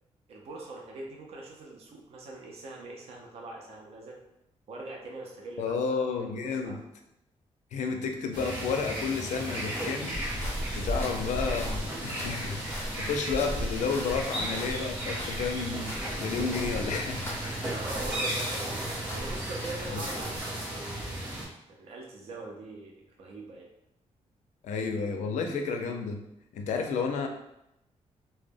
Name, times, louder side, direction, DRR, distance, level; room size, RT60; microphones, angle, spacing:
voice 1, 0.3-4.2 4.7-5.8 6.1-6.8 10.7-11.1 17.6-21.3 21.7-22.9 23.2-23.7, right 2 dB, 55° right, -1 dB, 0.5 m, -42 dB
voice 2, 5.6-6.8 7.7-10.2 10.7-17.2 19.9-20.0 24.6-26.2 26.5-27.3, left 5 dB, 80° left, 4 dB, 0.4 m, -31 dB
sound 1, 8.3-21.5, right 1 dB, 35° right, 0.9 m, -35 dB
sound 2, 10.1-18.2 18.4-20.4, equal, 20° left, 0.5 m, -38 dB
2.1 x 2.0 x 3.3 m, 0.84 s
wide cardioid pair, 175°, 12 cm